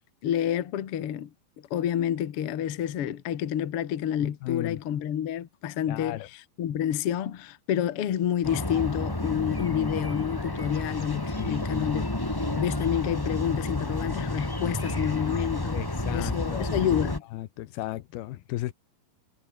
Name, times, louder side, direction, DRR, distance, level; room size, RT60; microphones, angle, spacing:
voice 1, 0.2-1.3 1.7-17.2, left 10 dB, 50° left, 1.9 m, -29 dB
voice 2, 4.4-4.8 5.9-6.3 11.4-11.6 15.7-16.7 17.3-18.7, left 15 dB, 90° left, 3.0 m, -35 dB
sound 1, 8.4-17.2, left 1 dB, 25° left, 0.4 m, -30 dB
omnidirectional pair, 4.3 m